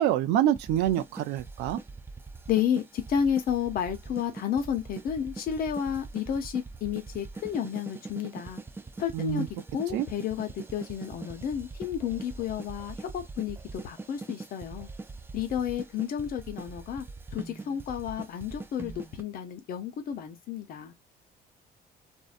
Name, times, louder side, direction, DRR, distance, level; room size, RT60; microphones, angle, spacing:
voice 1, 0.0-1.8 9.1-9.5 9.9-10.1, right 12 dB, 85° right, 0.4 m, -26 dB
sound 1, 0.5-19.2, right 3 dB, 15° right, 0.3 m, -43 dB
voice 2, 2.5-8.6 9.0-9.4 9.7-14.9 15.3-17.0 17.3-20.9, left 8 dB, 60° left, 0.8 m, -31 dB
2.6 x 2.1 x 2.4 m
cardioid pair, 110°, 17 cm